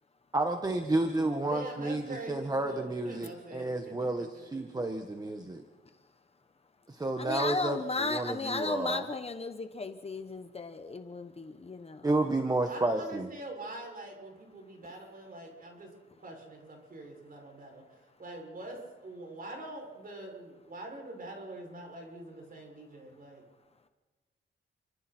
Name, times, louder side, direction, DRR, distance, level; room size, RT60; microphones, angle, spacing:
voice 1, 0.3-5.6 6.9-9.1 12.0-13.3, right 2 dB, 20° right, 5 dB, 1.4 m, -31 dB
voice 2, 1.4-4.7 12.6-15.9 16.2-23.4, right 2 dB, 45° right, 1 dB, 6.7 m, -44 dB
voice 3, 7.2-12.1, left 3 dB, 30° left, 7 dB, 1.1 m, -35 dB
29.5 x 25.0 x 4.5 m, 1.2 s
wide cardioid pair, 170°, 21 cm